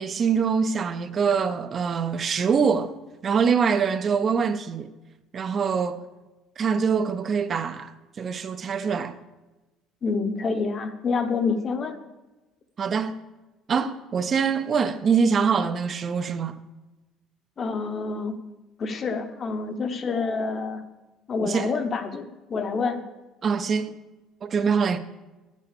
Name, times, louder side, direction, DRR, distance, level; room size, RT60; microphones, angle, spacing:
voice 1, 0.0-2.9 3.2-4.9 5.3-6.0 6.6-9.2 12.8-13.2 13.7-16.6 21.4-21.7 23.4-23.9 24.4-25.0, right 6 dB, 30° right, 0.5 m, -24 dB
voice 2, 10.0-12.0 17.6-18.4 18.8-20.8 21.3-23.0, left 4 dB, 35° left, 1.0 m, -27 dB
9.2 x 8.3 x 6.8 m
cardioid pair, 145°, 0 cm